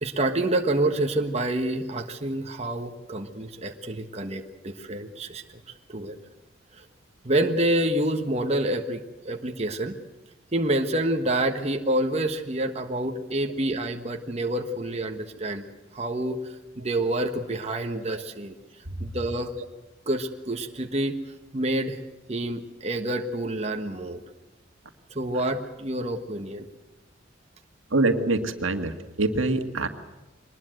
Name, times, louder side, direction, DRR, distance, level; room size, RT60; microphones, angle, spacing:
voice 1, 0.0-5.6 5.9-6.2 6.8-6.9 7.2-9.9 10.5-15.6 15.9-18.6 19.0-19.5 20.1-21.2 21.5-22.0 22.3-24.2 25.1-26.7, right 1 dB, 35° right, 4 dB, 1.4 m, -27 dB
voice 2, 27.9-29.9, right 2 dB, 85° right, 7 dB, 1.9 m, -25 dB
23.5 x 20.5 x 7.9 m, 1.0 s
head